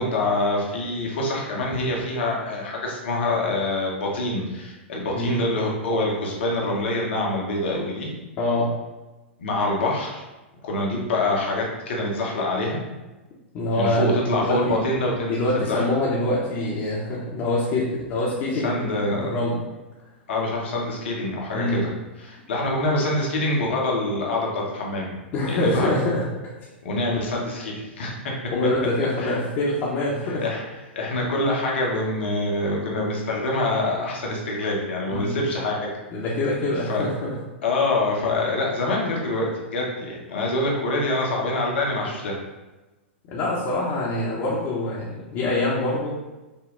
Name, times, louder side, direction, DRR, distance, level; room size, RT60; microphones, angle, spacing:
voice 1, 0.0-8.1 9.4-10.2 10.6-12.8 13.7-15.8 18.6-19.3 20.3-21.9 22.2-25.1 25.5-26.0 26.8-28.3 29.2-29.3 30.4-30.6 30.9-35.9 36.9-37.0 37.6-42.3, left 2 dB, 65° left, -2 dB, 1.2 m, -25 dB
voice 2, 8.4-8.7 13.5-14.8 15.3-19.6 21.5-21.8 25.3-26.2 28.5-30.4 35.1-35.4 36.1-37.3 43.3-46.1, left 2 dB, 40° left, -6 dB, 1.1 m, -25 dB
5.6 x 2.2 x 3.9 m, 1.1 s
hypercardioid pair, 105°, 7 cm